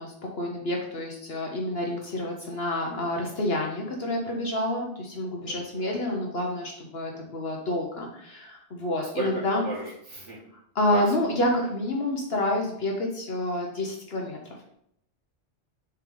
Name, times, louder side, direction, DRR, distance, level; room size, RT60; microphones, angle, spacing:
voice 1, 0.0-9.7 10.7-14.4, left 1 dB, 60° left, 0 dB, 1.3 m, -28 dB
voice 2, 5.5-6.1 9.1-10.4 10.9-11.3, right 3 dB, 80° right, -5 dB, 2.6 m, -35 dB
6.8 x 4.6 x 3.9 m, 0.71 s
omnidirectional pair, 1.2 m